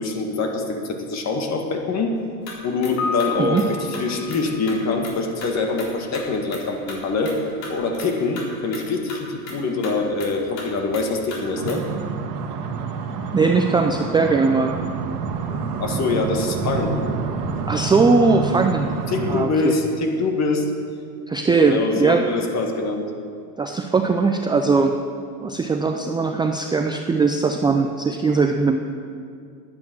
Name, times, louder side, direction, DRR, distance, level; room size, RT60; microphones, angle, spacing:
voice 1, 0.0-2.1 2.6-7.4 7.7-11.9 15.8-17.0 19.1-20.7 21.6-23.1, left 3 dB, 35° left, 4 dB, 2.0 m, -24 dB
sound 1, 2.2-2.5 2.8-2.9 3.2-4.4 4.7-5.1 5.4-5.9 6.1-8.1 8.4-8.5 8.7-8.8 9.1-12.0, left 3 dB, 60° left, 3.9 m, -37 dB
Piano, 3.0-5.9, left 5 dB, 90° left, 2.6 m, -32 dB
sound 2, 11.5-19.4, right 5 dB, 85° right, 1.4 m, -28 dB
voice 2, 13.3-14.7 17.7-18.9 19.3-19.7 21.3-22.2 23.6-24.9 25.4-28.8, right 4 dB, 10° right, 4 dB, 0.4 m, -19 dB
11.0 x 9.5 x 7.7 m, 2.3 s
supercardioid pair, 110°, 46 cm